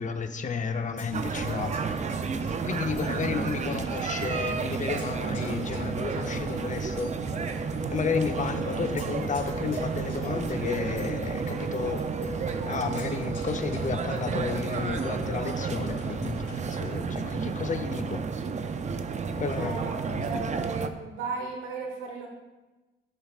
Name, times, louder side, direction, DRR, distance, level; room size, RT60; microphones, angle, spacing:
voice 1, 0.0-2.0 2.6-7.1 7.9-12.0 12.6-18.2 19.4-20.3, left 5 dB, 40° left, 7 dB, 0.8 m, -32 dB
Percussion, 1.0-16.9, left 2 dB, 65° left, 3.1 m, -44 dB
sound 1, 1.1-20.9, right 5 dB, 35° right, 0.6 m, -31 dB
sound 2, 4.1-20.2, right 2 dB, 10° right, 1.0 m, -43 dB
voice 2, 19.6-22.3, right 4 dB, 85° right, 2 dB, 1.3 m, -36 dB
15.5 x 7.0 x 2.5 m, 1.1 s
cardioid pair, 90°, 20 cm